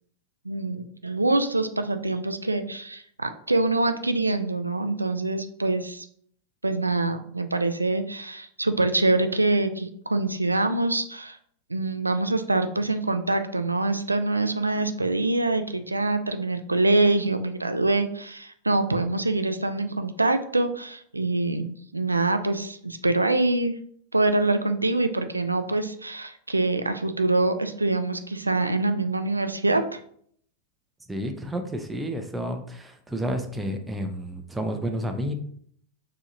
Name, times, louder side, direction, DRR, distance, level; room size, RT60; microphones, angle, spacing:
voice 1, 0.4-6.1 6.6-11.4 11.7-23.8 24.1-30.0, right 2 dB, 80° right, 9 dB, 0.3 m, -25 dB
voice 2, 31.1-35.3, equal, 10° right, 5 dB, 0.6 m, -30 dB
4.8 x 2.9 x 2.5 m, 0.62 s
figure-of-eight pair, 90°, 0 cm